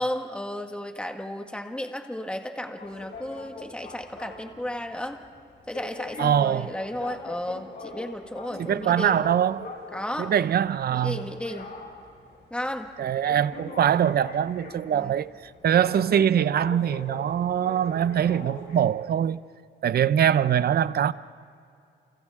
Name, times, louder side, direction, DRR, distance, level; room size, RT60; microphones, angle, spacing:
voice 1, 0.0-5.2 5.7-9.2 9.9-10.3 10.9-11.7 12.5-12.9 14.9-15.1, left 1 dB, 5° left, 1.7 m, -33 dB
sound 1, 2.8-18.9, left 3 dB, 80° left, 6.8 m, -42 dB
voice 2, 6.2-6.7 8.6-9.7 10.2-11.3 13.0-15.3 15.6-19.4 19.8-21.1, right 9 dB, 55° right, 0.6 m, -23 dB
30.0 x 29.5 x 3.7 m
cardioid pair, 105°, 19 cm